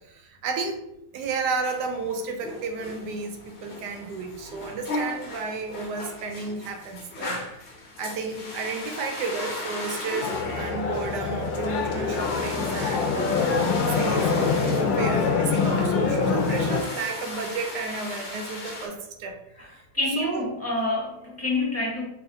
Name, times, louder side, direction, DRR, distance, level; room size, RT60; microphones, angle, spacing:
voice 1, 0.1-0.8 1.1-7.4 8.0-13.5 14.0-19.4 20.2-20.5, right 4 dB, 70° right, 4 dB, 1.1 m, -32 dB
sound 1, 1.2-18.9, left 2 dB, 60° left, 1.4 m, -38 dB
sound 2, 10.2-16.8, left 5 dB, 85° left, 1.4 m, -25 dB
voice 2, 19.9-22.0, left 2 dB, 10° left, -6 dB, 1.0 m, -27 dB
4.2 x 3.6 x 2.6 m, 0.83 s
omnidirectional pair, 2.0 m